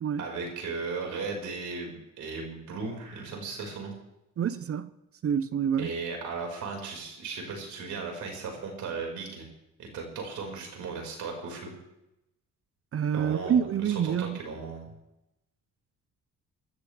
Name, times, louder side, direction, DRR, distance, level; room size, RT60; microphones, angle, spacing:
voice 1, 0.2-3.9 5.8-9.5 9.8-11.7 13.1-14.9, right 4 dB, 75° right, 5.2 m, -36 dB
voice 2, 4.4-4.9 5.2-5.9 12.9-14.4, right 8 dB, 50° right, 0.8 m, -27 dB
24.5 x 14.0 x 3.4 m
cardioid pair, 90°, 30 cm